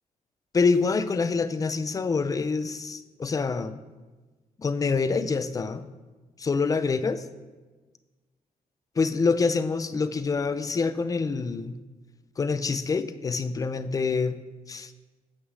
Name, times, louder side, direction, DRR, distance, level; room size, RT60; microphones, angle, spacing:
voice 1, 0.5-3.8 4.6-5.8 6.4-7.2 9.0-11.8 12.4-14.4 14.7-14.9, left 4 dB, 25° left, 12 dB, 0.4 m, -26 dB
8.1 x 6.2 x 6.2 m, 1.2 s
wide cardioid pair, 160°, 14 cm